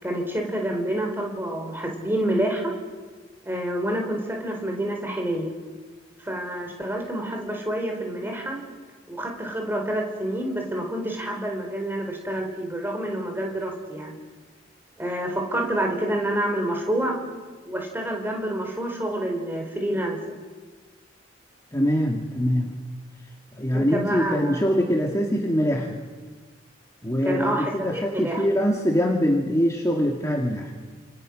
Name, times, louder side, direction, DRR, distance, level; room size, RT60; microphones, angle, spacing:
voice 1, 0.0-2.7 3.4-5.5 6.2-8.6 9.1-14.1 15.0-17.2 17.6-20.2 23.7-24.6 27.2-28.4, right 1 dB, 10° right, 2 dB, 4.3 m, -28 dB
voice 2, 21.7-22.8 23.6-26.1 27.0-30.7, equal, 15° left, -1 dB, 2.4 m, -23 dB
29.0 x 28.0 x 6.5 m, 1.4 s
head